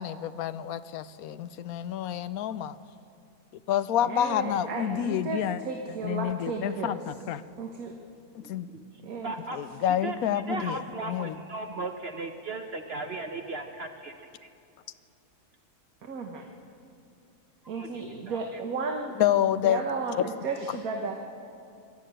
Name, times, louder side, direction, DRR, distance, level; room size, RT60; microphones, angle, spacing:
voice 1, 0.0-2.8 3.7-5.6 6.0-7.4 8.3-8.7 9.5-11.3 19.2-19.8, left 10 dB, 75° left, 14 dB, 1.1 m, -28 dB
voice 2, 4.0-7.0 7.6-7.9 9.0-9.3 16.0-16.4 17.7-19.2 19.5-21.2, right 4 dB, 70° right, 2 dB, 1.8 m, -34 dB
voice 3, 9.2-9.6 9.9-10.2 10.5-14.1 14.4-14.5 17.8-17.9 18.3-18.4, right 3 dB, 45° right, 5 dB, 1.1 m, -36 dB
23.5 x 13.0 x 8.9 m, 2.6 s
omnidirectional pair, 1.6 m